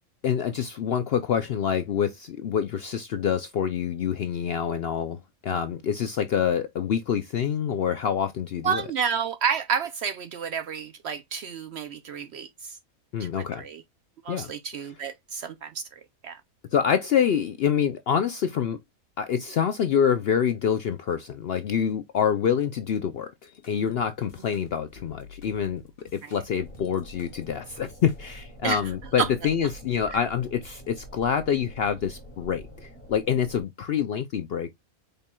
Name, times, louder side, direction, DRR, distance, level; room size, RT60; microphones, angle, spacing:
voice 1, 0.2-5.2 5.4-8.8 13.1-13.7 14.3-14.5 16.7-18.8 19.2-23.3 23.7-25.8 26.1-34.7, left 8 dB, 65° left, 0.6 m, -26 dB
voice 2, 8.6-12.5 13.2-13.3 13.6-13.8 14.3-15.8 16.2-16.4 26.2-26.4 28.6-28.8 29.2-29.3, right 7 dB, 65° right, 0.7 m, -29 dB
sound 1, 23.4-28.5, left 5 dB, 45° left, 1.4 m, -51 dB
sound 2, 26.6-33.6, equal, 10° left, 1.9 m, -46 dB
5.2 x 4.2 x 2.2 m
omnidirectional pair, 1.5 m